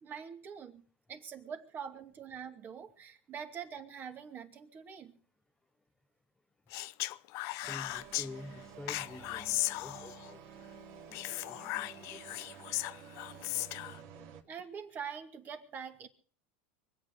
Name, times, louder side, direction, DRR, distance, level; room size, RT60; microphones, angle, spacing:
voice 1, 0.0-5.2 14.4-16.1, right 7 dB, 35° right, 6 dB, 2.3 m, -44 dB
Speech, 6.7-8.3 8.9-10.3 11.1-14.0, left 18 dB, 55° left, 0.7 m, -37 dB
sound 1, 7.6-14.4, right 7 dB, 55° right, 2.6 m, -51 dB
voice 2, 7.7-10.4 10.8-12.5, left 2 dB, 10° left, 9 dB, 0.7 m, -49 dB
24.5 x 8.7 x 6.4 m, 0.43 s
supercardioid pair, 115°, 6 cm